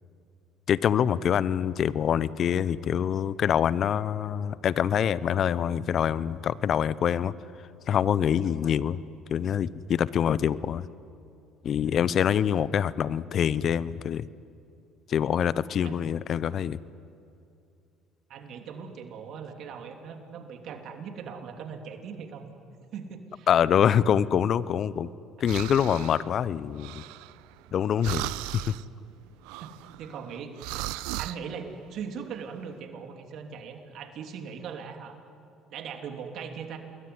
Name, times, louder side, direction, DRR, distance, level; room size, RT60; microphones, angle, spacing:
voice 1, 0.7-7.3 7.9-9.0 9.3-10.9 11.6-14.3 15.1-16.8 23.5-25.1 25.4-27.0 27.7-28.7, left 9 dB, 55° left, 18 dB, 0.9 m, -25 dB
voice 2, 18.3-22.5 22.9-23.5 29.6-30.7 31.0-35.2 35.7-36.8, right 6 dB, 65° right, 5 dB, 3.2 m, -40 dB
sound 1, 25.5-26.3 26.8-27.7 28.0-28.8 29.4-31.4, right 18 dB, 80° right, 0.6 m, -36 dB
28.0 x 21.5 x 9.7 m, 2.6 s
hypercardioid pair, 70°, 0 cm